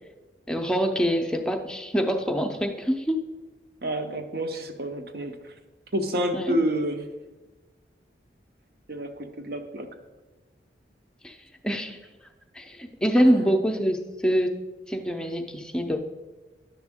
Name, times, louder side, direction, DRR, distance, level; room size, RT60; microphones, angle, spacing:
voice 1, 0.5-3.2 6.3-6.6 11.2-11.4 11.6-12.0 12.5-14.5 14.9-16.0, equal, 5° left, 4 dB, 0.6 m, -25 dB
voice 2, 3.8-5.5 5.9-7.1 8.9-9.9 13.2-13.3, right 1 dB, 55° right, 6 dB, 0.8 m, -29 dB
10.5 x 7.0 x 3.5 m, 1.2 s
head